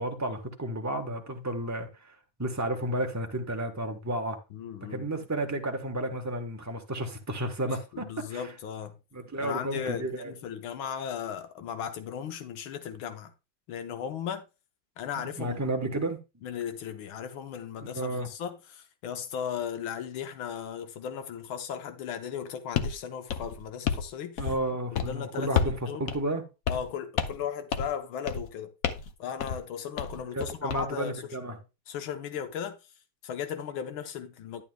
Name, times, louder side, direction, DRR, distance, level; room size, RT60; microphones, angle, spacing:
voice 1, 0.0-1.9 2.4-4.4 4.9-8.4 9.1-10.3 15.4-16.2 17.8-18.3 24.4-26.4 30.3-31.6, right 1 dB, 15° right, 0.5 m, -32 dB
voice 2, 4.5-5.1 7.9-9.0 9.4-13.3 13.7-14.4 15.0-15.6 15.9-16.0 16.4-24.5 24.9-26.1 26.7-28.7 29.2-31.3 31.9-32.8 33.2-34.6, left 8 dB, 80° left, 1.8 m, -36 dB
sound 1, 22.8-23.0 23.3-24.1 24.4-24.7 24.9-25.1 25.6-25.8 26.1-26.2 26.7-26.9 27.2-27.4 27.7-28.0 28.3-28.5 28.8-29.1 29.4-29.6 30.0-30.8, left 7 dB, 65° left, 0.8 m, -30 dB
11.0 x 8.4 x 2.3 m
omnidirectional pair, 2.2 m